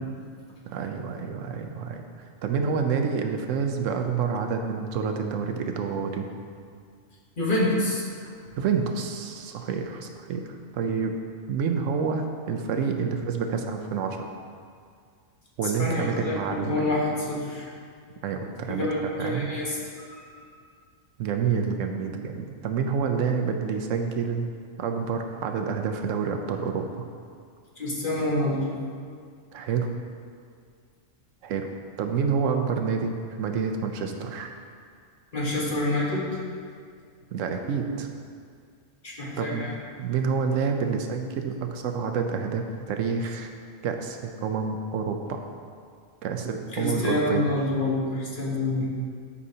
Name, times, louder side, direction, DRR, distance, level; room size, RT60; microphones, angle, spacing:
voice 1, 0.7-2.0 2.4-6.3 8.6-10.4 10.7-11.2 11.5-14.3 15.6-16.9 18.2-18.9 19.2-19.5 21.2-24.5 24.8-27.1 29.5-29.9 31.4-31.7 32.0-34.5 37.3-38.1 39.4-39.7 40.0-43.5 43.8-45.4 46.2-47.5, right 6 dB, 75° right, 4 dB, 0.9 m, -28 dB
voice 2, 7.4-8.0 15.8-17.7 18.8-19.8 20.1-20.2 27.8-28.6 35.3-36.3 39.0-39.7 46.7-48.9, left 1 dB, 40° left, -4 dB, 1.3 m, -27 dB
11.0 x 5.3 x 2.8 m, 2.1 s
omnidirectional pair, 1.4 m